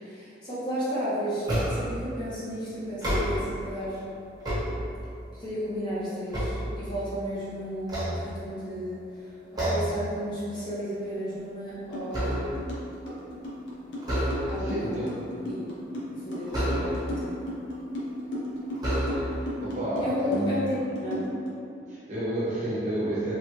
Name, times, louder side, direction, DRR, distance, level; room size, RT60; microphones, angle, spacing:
voice 1, 0.0-4.0 5.4-9.0 9.6-12.4 14.5-15.1 15.5-15.6 16.1-17.4 20.0-21.3, equal, 25° left, -11 dB, 0.9 m, -33 dB
sound 1, 1.4-2.0 2.9-3.7 4.2-5.3 5.8-7.3 7.8-8.8 9.6-10.1 10.4-10.7 11.1-12.8 14.0-14.8 16.5-17.3 18.0-18.1 18.8-19.5, equal, 25° right, 1.2 m, -30 dB
sound 2, 11.9-12.0 12.3-21.5, equal, 90° left, 0.7 m, -34 dB
voice 2, 14.5-15.1 19.6-20.6 21.9-23.4, right 1 dB, 45° right, -9 dB, 0.8 m, -30 dB
3.0 x 2.4 x 2.9 m, 2.4 s
head